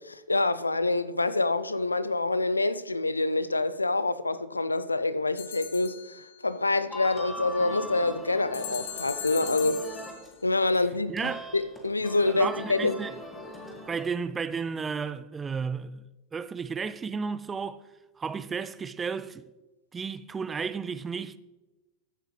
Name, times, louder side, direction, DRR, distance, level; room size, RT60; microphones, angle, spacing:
voice 1, 0.0-9.9 10.4-13.0, left 2 dB, 80° left, 0.4 m, -27 dB
sound 1, 5.4-6.4 8.5-10.3, left 9 dB, 55° left, 0.9 m, -39 dB
sound 2, 6.9-10.5 10.7-14.1, left 1 dB, 10° left, 2.0 m, -40 dB
voice 2, 11.1-11.5 12.3-13.2 13.9-16.0 16.3-17.8 18.2-19.5 19.9-21.4, right 5 dB, 15° right, 0.4 m, -33 dB
14.0 x 8.1 x 3.2 m
figure-of-eight pair, 90°, 0 cm